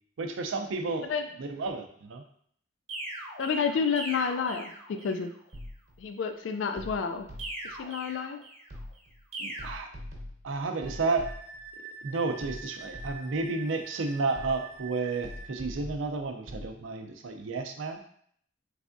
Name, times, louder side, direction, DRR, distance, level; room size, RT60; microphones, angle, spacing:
voice 1, 0.2-1.1 1.4-2.2 9.4-9.9 10.4-11.3 12.0-18.0, right 3 dB, 75° right, 5 dB, 0.5 m, -31 dB
sound 1, 2.9-5.3 7.4-8.8 9.3-9.8, right 1 dB, 30° right, 0.6 m, -40 dB
voice 2, 3.4-5.3 6.0-7.3 7.6-8.4, left 5 dB, 70° left, 7 dB, 0.3 m, -30 dB
sound 2, 5.5-6.0 6.8-7.8 8.7-9.2 9.6-11.7 12.4-13.5 14.3-14.9 15.2-16.7, left 1 dB, 60° right, 0.9 m, -43 dB
Wind instrument woodwind instrument, 10.8-15.6, right 4 dB, 30° left, 1.0 m, -46 dB
3.4 x 3.2 x 2.5 m, 0.63 s
head